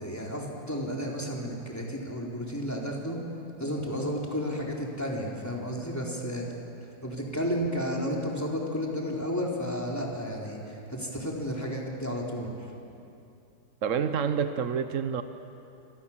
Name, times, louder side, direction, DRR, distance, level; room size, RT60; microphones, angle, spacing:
voice 1, 0.0-3.2 3.6-6.4 7.0-12.7, equal, 10° left, -2 dB, 4.0 m, -32 dB
voice 2, 13.8-15.2, right 7 dB, 50° right, 9 dB, 1.1 m, -28 dB
29.0 x 25.5 x 7.4 m, 2.8 s
omnidirectional pair, 2.1 m